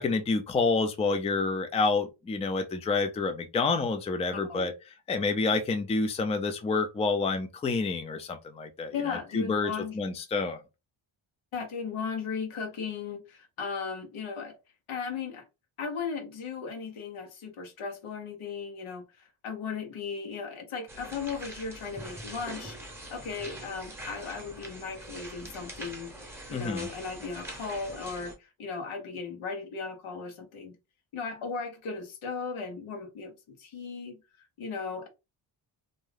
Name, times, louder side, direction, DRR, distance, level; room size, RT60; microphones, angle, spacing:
voice 1, 0.0-4.7 5.1-10.6 26.5-26.9, left 4 dB, 15° left, 0.4 m, -28 dB
voice 2, 4.3-4.7 8.9-10.0 11.5-14.6 14.9-15.4 15.8-26.1 26.5-30.7 31.1-34.2 34.6-35.1, left 5 dB, 80° left, 1.0 m, -36 dB
sound 1, 20.9-28.3, right 1 dB, 5° right, 0.8 m, -43 dB
2.6 x 2.2 x 3.3 m
cardioid pair, 110°, 48 cm